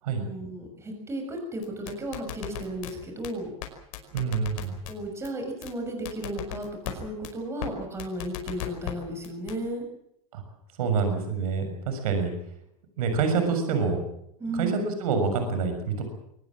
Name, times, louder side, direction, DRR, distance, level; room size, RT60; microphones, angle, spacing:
voice 1, 0.1-3.5 4.9-9.8 14.4-14.8, right 1 dB, 15° right, 3 dB, 6.7 m, -34 dB
sound 1, 1.6-2.9 3.2-3.3 3.6-3.7 3.9-4.9 5.2-5.3 5.6-5.7 6.0-6.9 7.2-7.3 7.6-7.7 8.0-8.9 9.2-9.5, left 14 dB, 65° left, 5.3 m, -35 dB
voice 2, 4.1-4.8 10.3-10.4 10.8-12.3 13.0-14.0 14.5-16.0, right 5 dB, 75° right, 6 dB, 6.6 m, -26 dB
23.5 x 20.0 x 7.6 m, 0.77 s
supercardioid pair, 140°, 19 cm